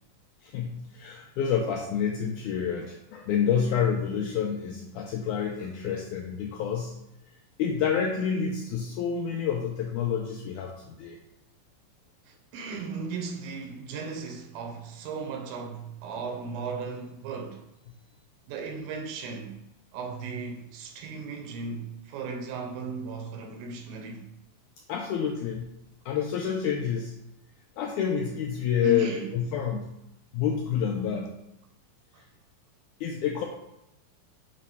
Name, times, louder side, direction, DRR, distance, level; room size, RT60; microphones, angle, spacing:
voice 1, 0.5-7.0 7.6-11.2 24.9-25.7 26.1-27.1 27.8-29.1 29.3-29.9 30.3-31.3 33.0-33.4, left 7 dB, 85° left, 1.8 m, -28 dB
voice 2, 12.3-17.6 18.5-19.5 19.9-24.3 28.8-29.3, right 3 dB, 90° right, 2.7 m, -36 dB
6.5 x 3.0 x 5.4 m
omnidirectional pair, 4.1 m